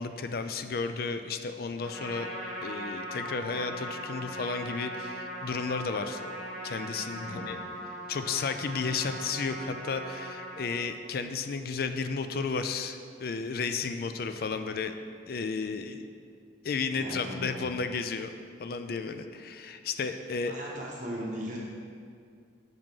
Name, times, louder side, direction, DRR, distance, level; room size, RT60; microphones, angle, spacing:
voice 1, 0.0-2.3 2.6-6.2 6.6-7.6 8.1-15.0 15.3-16.1 16.6-18.3 18.6-20.5, left 4 dB, 55° left, 9 dB, 0.4 m, -33 dB
Trumpet, 1.8-10.8, equal, 5° left, 1.3 m, -39 dB
voice 2, 7.2-7.5 17.0-17.7 20.5-21.6, equal, 45° right, -3 dB, 1.1 m, -38 dB
6.0 x 5.1 x 5.5 m, 2.2 s
head